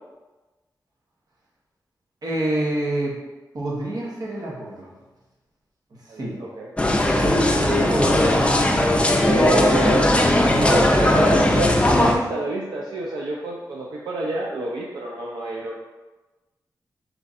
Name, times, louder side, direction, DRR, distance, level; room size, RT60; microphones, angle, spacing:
voice 1, 2.2-3.1 3.5-5.0 6.1-6.4 7.2-8.5 10.5-11.4, right 1 dB, 60° right, -4 dB, 1.3 m, -26 dB
voice 2, 6.1-6.7 9.2-10.3 10.7-11.7 12.0-15.8, right 2 dB, 85° right, -3 dB, 0.5 m, -28 dB
sound 1, 6.8-12.1, left 1 dB, 15° left, 0.6 m, -18 dB
4.4 x 2.5 x 4.1 m, 1.2 s
cardioid pair, 70°, 7 cm